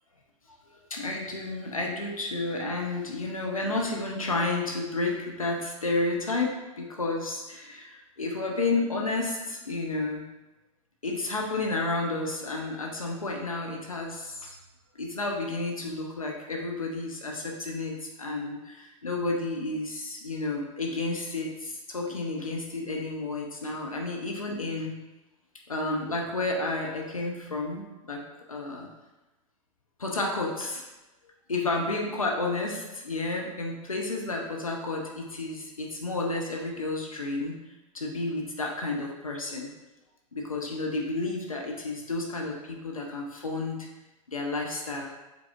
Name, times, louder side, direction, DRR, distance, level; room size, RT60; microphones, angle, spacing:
voice 1, 0.7-10.2 11.0-14.6 15.0-24.9 25.7-28.2 28.5-28.9 30.0-30.9 31.5-37.6 37.9-39.7 40.3-43.8 44.3-45.1, left 2 dB, 85° left, 0 dB, 0.7 m, -31 dB
5.2 x 4.0 x 2.4 m, 1.1 s
figure-of-eight pair, 90°, 17 cm